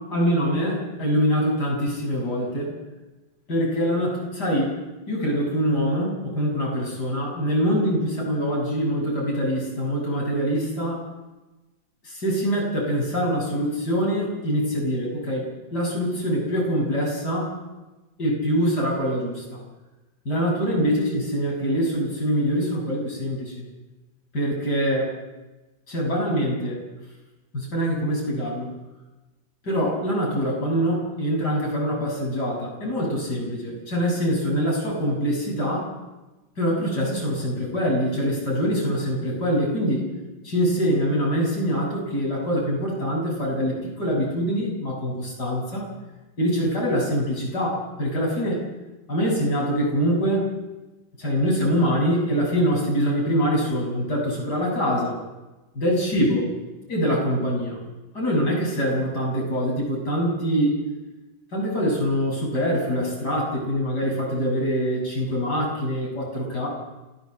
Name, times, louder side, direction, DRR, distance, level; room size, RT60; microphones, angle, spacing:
voice 1, 0.0-2.7 3.5-4.8 5.1-11.1 12.0-17.5 18.2-19.6 20.3-23.6 24.3-25.1 25.9-26.8 27.5-28.7 29.6-35.9 36.6-40.1 40.4-45.9 46.4-48.6 49.1-50.5 51.2-55.2 55.7-56.4 56.9-57.8 58.1-60.9 61.5-66.7, equal, 60° left, -2 dB, 7.5 m, -24 dB
28.0 x 14.5 x 7.7 m, 1.1 s
omnidirectional pair, 2.0 m